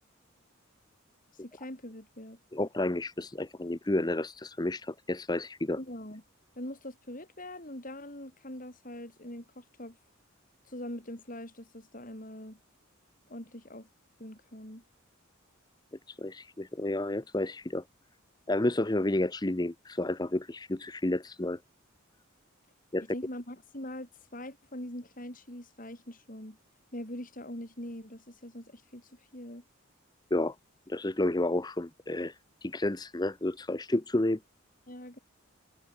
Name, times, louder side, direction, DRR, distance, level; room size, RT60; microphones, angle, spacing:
voice 1, 1.4-2.4 5.8-6.2 6.5-10.0 10.7-12.6 13.3-13.9 14.2-14.8 23.0-26.6 26.9-29.6 34.9-35.2, left 1 dB, 40° left, 5.1 m, -43 dB
voice 2, 2.5-5.8 16.1-17.8 18.5-21.6 22.9-23.0 30.3-30.5 30.9-34.4, left 1 dB, 20° left, 0.7 m, -31 dB
head